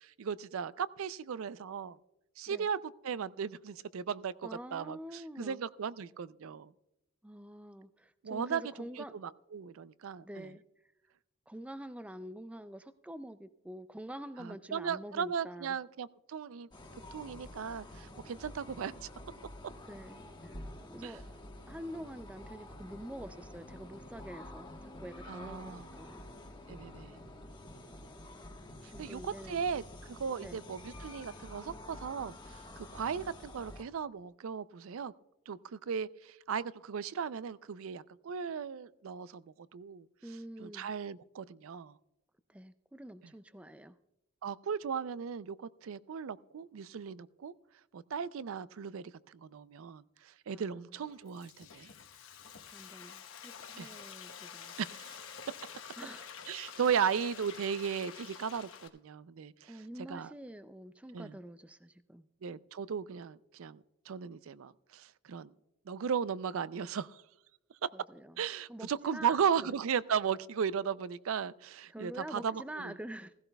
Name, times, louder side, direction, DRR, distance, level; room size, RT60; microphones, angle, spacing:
voice 1, 0.0-2.0 2.4-2.8 3.0-6.7 8.2-10.5 14.4-16.7 17.1-18.9 21.0-21.1 25.3-25.9 26.7-27.2 28.8-29.8 30.1-35.1 35.5-39.4 39.7-40.1 40.6-41.9 44.4-47.5 47.9-50.0 50.5-51.9 53.8-53.9 54.8-55.2 56.5-59.7 60.1-60.3 61.1-61.3 62.4-63.8 64.1-65.5 65.9-67.2 67.8-67.9 68.4-72.9, right 7 dB, 75° right, 18 dB, 0.4 m, -36 dB
voice 2, 4.4-5.6 7.2-9.1 10.2-10.6 11.5-15.8 19.9-20.6 20.9-21.2 21.7-26.3 28.9-29.7 30.4-30.6 40.2-40.9 42.5-44.0 50.5-50.8 52.7-54.7 56.0-56.3 59.7-62.2 67.9-68.4 68.7-69.8 71.9-73.3, right 1 dB, 5° right, 12 dB, 0.3 m, -46 dB
sound 1, 16.7-33.8, left 1 dB, 20° left, 1.3 m, -49 dB
Frying (food), 51.0-58.9, left 7 dB, 75° left, 1.1 m, -49 dB
16.0 x 16.0 x 2.3 m, 0.88 s
head